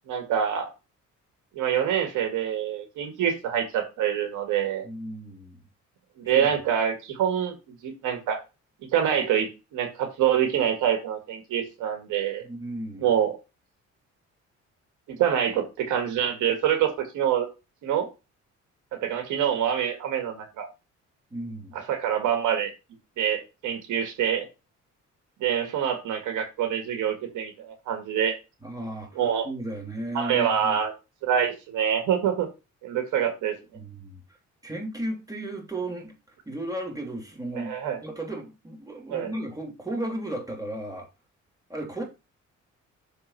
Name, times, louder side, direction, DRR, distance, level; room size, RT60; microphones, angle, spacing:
voice 1, 0.1-0.7 1.5-4.8 6.2-7.5 7.8-8.4 8.9-12.4 13.0-13.4 15.1-17.5 17.8-18.1 18.9-20.7 21.7-22.7 23.2-24.4 25.4-28.3 29.2-29.5 30.1-30.9 31.2-32.5 32.8-33.6 37.6-38.0 39.1-39.3, right 9 dB, 90° right, 2.0 m, -26 dB
voice 2, 4.8-5.6 6.3-6.6 12.4-13.1 21.3-21.8 28.6-30.8 33.7-34.2 34.6-36.1 36.4-37.8 38.0-41.1 41.7-42.0, right 1 dB, 10° right, 3.4 m, -35 dB
6.8 x 4.1 x 5.8 m
cardioid pair, 90°, 30 cm